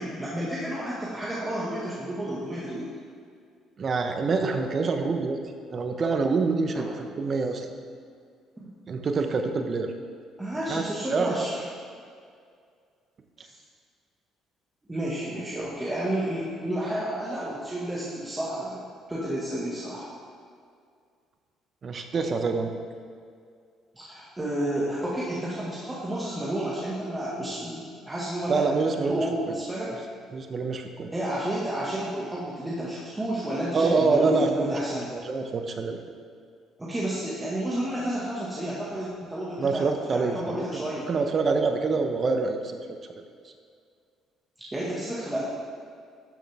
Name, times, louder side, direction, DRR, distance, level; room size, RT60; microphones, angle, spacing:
voice 1, 0.0-2.8 4.4-4.5 6.7-6.8 8.6-8.7 10.4-11.6 13.4-13.5 14.9-18.8 19.1-20.1 24.0-29.9 31.1-35.1 36.8-41.1 44.7-45.4, right 1 dB, 15° right, -7 dB, 1.9 m, -31 dB
voice 2, 3.8-5.4 5.7-7.7 8.9-9.9 10.7-11.7 21.8-22.8 28.5-29.3 30.3-31.1 33.7-34.8 35.1-36.0 39.6-43.0, right 4 dB, 45° right, 5 dB, 0.9 m, -26 dB
12.0 x 6.4 x 3.6 m, 2.2 s
cardioid pair, 85°, 0 cm